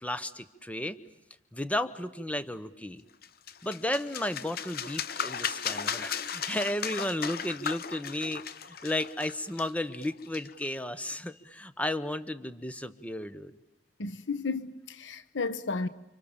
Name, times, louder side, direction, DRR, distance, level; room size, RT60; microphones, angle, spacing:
voice 1, 0.0-1.0 1.5-3.0 3.6-13.6, left 1 dB, 10° left, 1.1 m, -33 dB
sound 1, 3.2-10.7, left 7 dB, 55° left, 1.0 m, -36 dB
voice 2, 14.0-15.9, left 4 dB, 85° left, 1.0 m, -33 dB
30.0 x 26.5 x 7.2 m
head